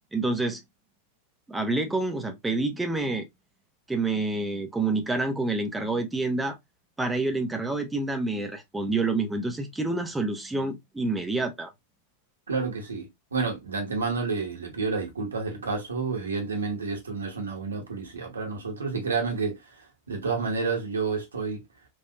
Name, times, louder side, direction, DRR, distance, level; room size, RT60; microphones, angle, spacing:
voice 1, 0.1-0.6 1.5-3.3 3.9-6.6 7.0-11.7, right 2 dB, 10° right, 0.7 m, -28 dB
voice 2, 12.5-21.6, right 4 dB, 70° right, 1.2 m, -30 dB
3.3 x 2.6 x 2.8 m
figure-of-eight pair, 90°, 0 cm